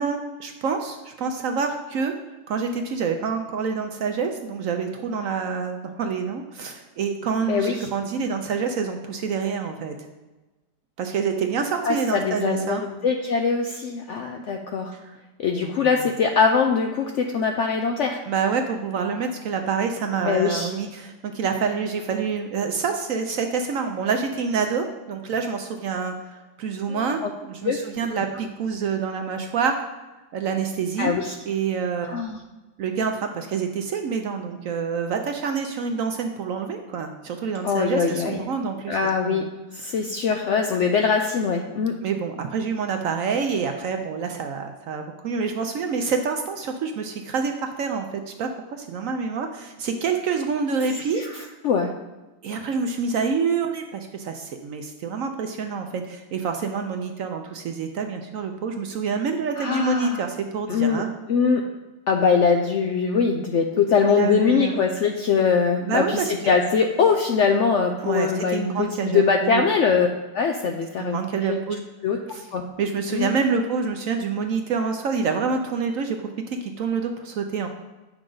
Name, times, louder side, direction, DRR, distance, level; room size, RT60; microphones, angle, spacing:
voice 1, 0.0-2.1 2.5-10.1 11.0-12.8 15.0-15.2 15.6-16.0 18.3-29.8 30.3-31.1 31.5-32.2 32.8-39.5 39.8-39.9 42.0-51.2 52.4-61.1 64.1-64.8 65.8-66.3 68.0-69.6 70.6-70.7 71.0-71.8 72.3-72.5 72.8-77.7, right 5 dB, 65° right, 5 dB, 0.8 m, -27 dB
voice 2, 7.4-7.9 11.8-14.9 15.4-18.2 20.2-20.7 26.9-27.3 27.6-27.8 31.0-31.3 32.0-32.4 37.6-38.4 38.9-39.5 39.7-42.0 51.2-51.3 51.6-51.9 59.6-60.2 60.7-61.0 61.3-61.6 62.1-66.2 66.5-70.1 70.3-71.2 71.5-71.6 72.0-72.2 72.5-72.6 73.1-73.3, left 5 dB, 90° left, 3 dB, 0.6 m, -22 dB
8.7 x 6.1 x 3.8 m, 1.1 s
omnidirectional pair, 1.9 m